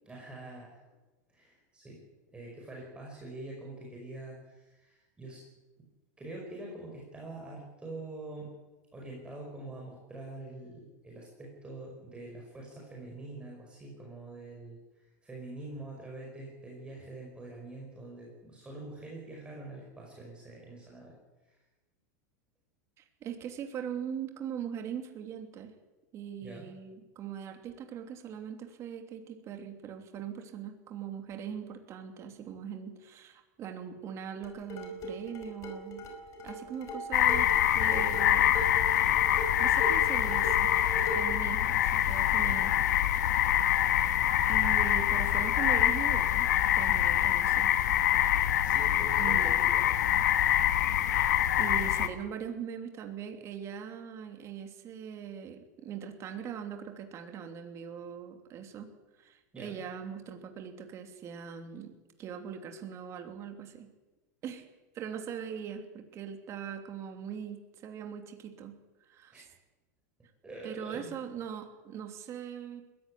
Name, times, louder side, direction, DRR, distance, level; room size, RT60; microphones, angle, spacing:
voice 1, 0.0-0.8 1.3-2.0 2.3-5.4 5.8-5.9 6.2-8.5 8.9-21.1 21.4-21.6 26.4-26.7 48.6-49.8 59.5-59.7 69.3-69.5 70.4-71.2, right 2 dB, 10° right, -2 dB, 5.3 m, -45 dB
voice 2, 23.0-25.7 26.1-36.0 36.4-38.6 39.0-40.7 41.1-42.7 43.8-44.1 44.5-47.7 49.2-49.5 51.6-58.9 59.2-61.9 62.2-63.9 64.4-64.7 64.9-68.7 69.1-69.5 70.6-72.8, right 8 dB, 30° right, 5 dB, 3.1 m, -41 dB
sound 1, 34.4-41.4, right 1 dB, 35° left, 4.8 m, -39 dB
sound 2, 37.1-52.1, left 11 dB, 85° left, 1.7 m, -25 dB
21.0 x 15.0 x 9.9 m, 1.1 s
supercardioid pair, 145°, 9 cm